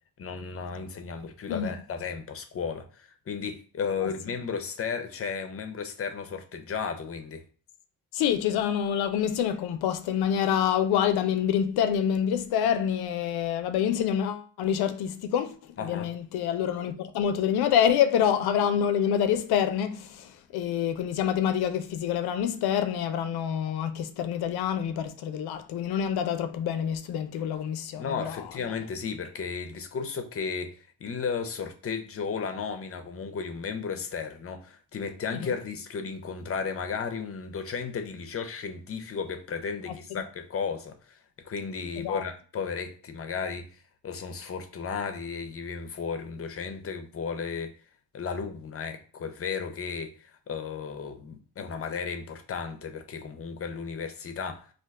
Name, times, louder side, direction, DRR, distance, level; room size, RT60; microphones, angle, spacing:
voice 1, 0.2-7.4 15.8-16.1 28.0-41.2 41.4-47.7 48.1-54.7, left 5 dB, 40° left, 0.6 m, -34 dB
voice 2, 8.1-28.7 35.3-35.5 39.9-40.0 42.0-42.2, left 9 dB, 80° left, 0.5 m, -27 dB
2.5 x 2.2 x 3.5 m
cardioid pair, 75°, 37 cm